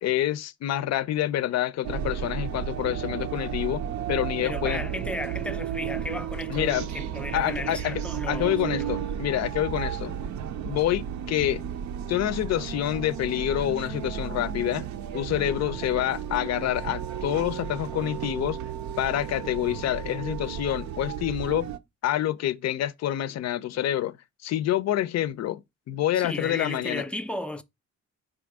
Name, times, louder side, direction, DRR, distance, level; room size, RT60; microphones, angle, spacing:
voice 1, 0.0-3.8 4.1-4.8 6.5-6.9 7.3-8.0 8.3-10.1 10.6-11.6 12.1-14.9 15.1-18.6 19.0-21.7 22.0-24.2 24.4-27.0, left 12 dB, 60° left, 0.5 m, -27 dB
sound 1, 1.8-21.8, right 9 dB, 70° right, 0.5 m, -33 dB
voice 2, 4.4-8.9 26.1-27.6, left 1 dB, 5° left, 0.4 m, -35 dB
4.6 x 2.5 x 4.6 m
cardioid pair, 90°, 30 cm